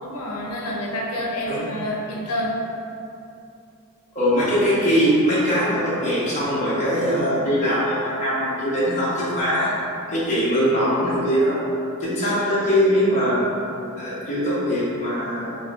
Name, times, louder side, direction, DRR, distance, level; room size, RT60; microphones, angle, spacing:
voice 1, 0.0-2.6, left 1 dB, 90° left, -2 dB, 0.6 m, -28 dB
voice 2, 4.1-9.7 10.1-11.6 12.0-13.5 13.9-15.5, equal, 35° left, -9 dB, 0.8 m, -21 dB
4.3 x 3.1 x 2.3 m, 2.7 s
head